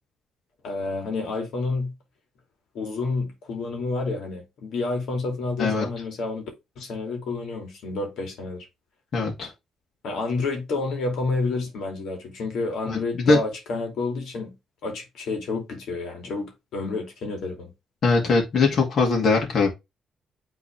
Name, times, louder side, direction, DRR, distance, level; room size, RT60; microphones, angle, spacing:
voice 1, 0.6-1.9 2.7-6.5 6.8-8.7 10.0-14.5 14.8-17.7, left 3 dB, 75° left, 2.5 m, -29 dB
voice 2, 9.1-9.5 12.9-13.4 18.0-19.7, left 4 dB, 55° left, 2.3 m, -21 dB
8.5 x 3.9 x 3.4 m
cardioid pair, 90°, 0 cm